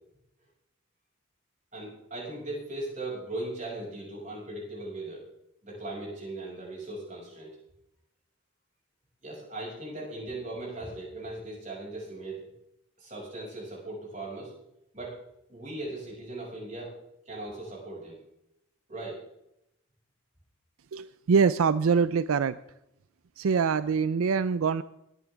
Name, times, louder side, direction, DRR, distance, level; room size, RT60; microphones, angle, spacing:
voice 1, 1.7-5.3 5.6-7.6 9.2-12.5 13.0-14.5 14.9-15.2 15.5-17.0 17.3-18.2 18.9-19.2, right 2 dB, 35° right, -4 dB, 6.2 m, -38 dB
voice 2, 20.9-22.6 23.4-24.8, right 5 dB, 80° right, 15 dB, 0.4 m, -24 dB
21.0 x 9.8 x 3.5 m, 0.82 s
head